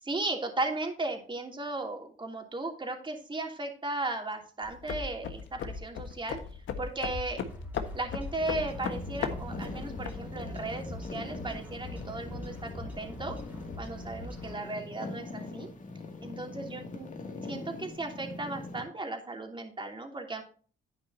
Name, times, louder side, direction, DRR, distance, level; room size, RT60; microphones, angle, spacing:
voice 1, 0.0-6.4 6.8-7.5 7.9-13.4 13.8-15.7 16.2-17.1 17.5-20.4, right 2 dB, 25° right, 3 dB, 3.0 m, -36 dB
sound 1, 4.6-10.2, left 6 dB, 80° left, 1.5 m, -37 dB
sound 2, 7.0-14.5, left 1 dB, 10° right, 3.3 m, -44 dB
sound 3, 8.4-18.8, left 3 dB, 40° left, 2.4 m, -42 dB
10.5 x 9.5 x 2.8 m, 0.40 s
cardioid pair, 90°, 20 cm